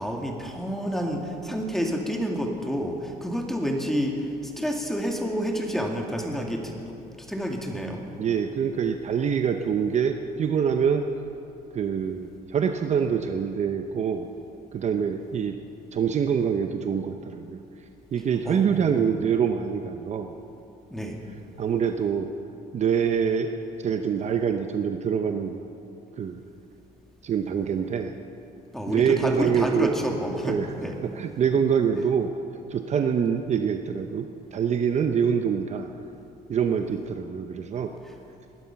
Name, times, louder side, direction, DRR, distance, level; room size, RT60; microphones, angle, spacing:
voice 1, 0.0-6.7 7.3-8.0 18.5-19.0 20.9-21.2 28.7-31.0, equal, ahead, 1 dB, 2.2 m, -29 dB
voice 2, 8.2-11.0 11.7-14.3 14.7-15.6 15.9-17.6 18.1-20.3 21.6-22.3 22.7-23.5 23.8-25.6 26.2-26.4 27.2-28.1 28.9-29.9 30.4-30.7 31.0-32.3 32.7-35.9 36.5-37.9, right 7 dB, 45° right, 6 dB, 0.8 m, -25 dB
20.0 x 11.5 x 5.9 m, 2.8 s
cardioid pair, 110°, 17 cm